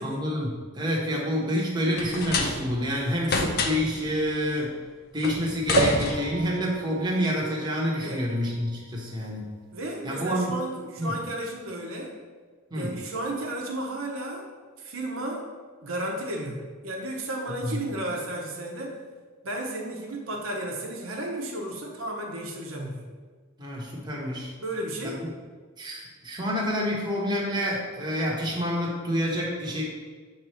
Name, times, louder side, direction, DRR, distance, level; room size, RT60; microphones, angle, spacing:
voice 1, 0.0-4.7 5.1-9.5 10.0-10.6 11.0-11.2 12.7-12.9 17.6-17.8 23.6-24.5 25.2-25.3 25.8-29.8, equal, 20° right, -4 dB, 1.2 m, -28 dB
sound 1, 2.0-2.9 3.2-4.0 5.2-6.6, left 3 dB, 50° left, 0.6 m, -28 dB
sound 2, 5.8-9.4 10.0-10.1 10.3-10.4, right 3 dB, 50° right, 0.7 m, -32 dB
voice 2, 9.7-12.1 12.7-14.5 14.8-15.5 15.8-19.0 19.4-23.0 24.6-25.3, right 1 dB, 85° right, 0 dB, 1.0 m, -33 dB
6.9 x 3.3 x 4.4 m, 1.5 s
head